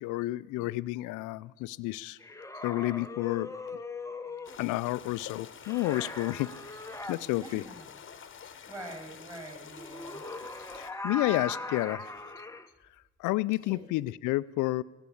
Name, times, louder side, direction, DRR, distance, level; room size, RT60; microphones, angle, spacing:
voice 1, 0.0-2.2 2.6-3.5 4.6-6.5 7.1-7.6 10.7-12.1 13.2-14.8, left 18 dB, 75° left, 18 dB, 0.5 m, -30 dB
sound 1, 2.2-4.6 5.6-7.2 9.7-12.7, left 2 dB, 10° left, 0.9 m, -40 dB
sound 2, 4.4-10.9, left 7 dB, 40° left, 1.2 m, -48 dB
voice 2, 7.4-7.9 8.7-10.2 13.6-13.8, right 1 dB, 10° right, 2 dB, 6.6 m, -45 dB
16.0 x 8.3 x 8.5 m, 1.2 s
supercardioid pair, 75°, 32 cm